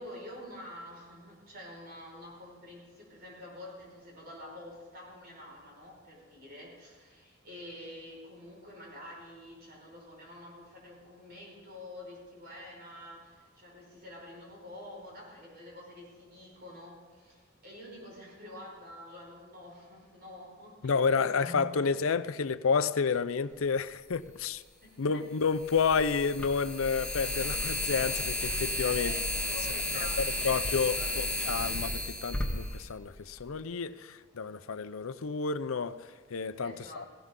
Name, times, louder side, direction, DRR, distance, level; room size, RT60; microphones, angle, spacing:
voice 1, 0.0-21.7 24.8-25.2 28.9-31.1 36.6-37.1, left 1 dB, 45° right, -2 dB, 5.2 m, -47 dB
voice 2, 20.8-24.6 25.0-29.2 29.9-37.0, left 5 dB, 80° left, 13 dB, 0.6 m, -30 dB
sound 1, 24.1-24.2 25.6-33.5, left 1 dB, 5° left, 1.5 m, -33 dB
18.0 x 16.5 x 3.8 m, 1.5 s
head